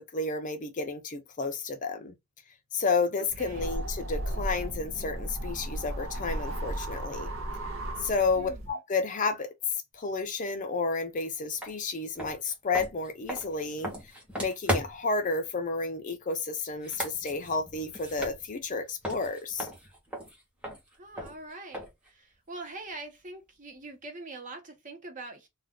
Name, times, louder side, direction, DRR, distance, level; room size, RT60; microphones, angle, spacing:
voice 1, 0.0-2.1 2.7-7.3 8.0-9.5 9.9-13.9 14.3-19.7, left 4 dB, 35° left, 0.5 m, -31 dB
sound 1, 3.3-8.7, right 1 dB, 65° right, 0.7 m, -35 dB
voice 2, 3.4-3.7 8.3-8.6 20.9-25.5, right 2 dB, 35° right, 0.9 m, -43 dB
sound 2, 11.6-11.7 12.1-15.2 16.7-18.8 19.0-22.1, equal, 5° right, 0.9 m, -36 dB
2.4 x 2.4 x 3.5 m
head